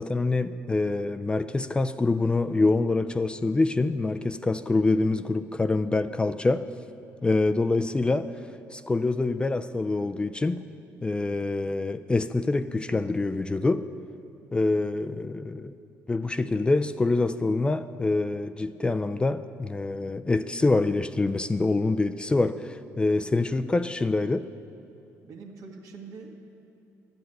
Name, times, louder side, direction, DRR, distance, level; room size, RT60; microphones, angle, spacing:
voice 1, 0.0-6.7 7.2-8.3 8.7-10.6 11.0-13.8 14.5-15.7 16.1-24.4, left 3 dB, 15° left, 10 dB, 0.3 m, -25 dB
voice 2, 25.2-26.4, right 4 dB, 70° right, 1 dB, 1.6 m, -44 dB
11.5 x 7.9 x 7.7 m, 2.9 s
cardioid pair, 105°, 6 cm